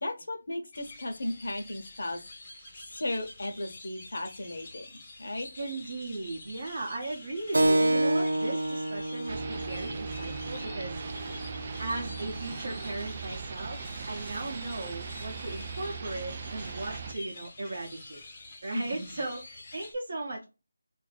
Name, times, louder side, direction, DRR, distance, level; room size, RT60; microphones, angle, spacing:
voice 1, 0.0-2.2 2.5-5.5 18.7-19.1, left 1 dB, 60° left, 4 dB, 1.0 m, -36 dB
sound 1, 0.7-19.9, left 2 dB, 20° left, 0.7 m, -48 dB
voice 2, 5.6-11.0 11.8-13.8 14.1-18.2 18.6-20.4, right 2 dB, 45° right, 0 dB, 0.8 m, -37 dB
Keyboard (musical), 7.5-12.6, right 1 dB, 90° right, 0.7 m, -29 dB
sound 2, 9.3-17.1, right 5 dB, 25° right, 0.3 m, -39 dB
2.6 x 2.6 x 4.0 m, 0.28 s
figure-of-eight pair, 175°, 0 cm